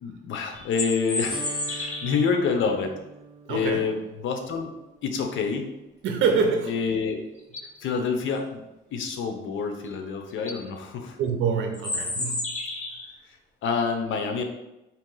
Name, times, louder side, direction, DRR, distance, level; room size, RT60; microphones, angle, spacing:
voice 1, 0.0-2.9 3.5-4.7 5.0-5.7 6.7-7.2 7.8-8.6 8.9-11.2 13.3-13.4 13.6-14.4, left 5 dB, 75° left, 4 dB, 0.8 m, -27 dB
sound 1, 0.5-2.4 6.9-7.0 7.4-7.8 9.8-9.9 10.3-10.6 11.7-13.1, left 2 dB, 35° left, 1.0 m, -31 dB
sound 2, 1.3-7.3, right 4 dB, 25° right, 0.7 m, -46 dB
voice 2, 3.5-3.8 6.0-6.8 11.2-12.6, right 5 dB, 75° right, 4 dB, 0.6 m, -25 dB
4.4 x 3.0 x 3.9 m, 0.96 s
cardioid pair, 90°, 20 cm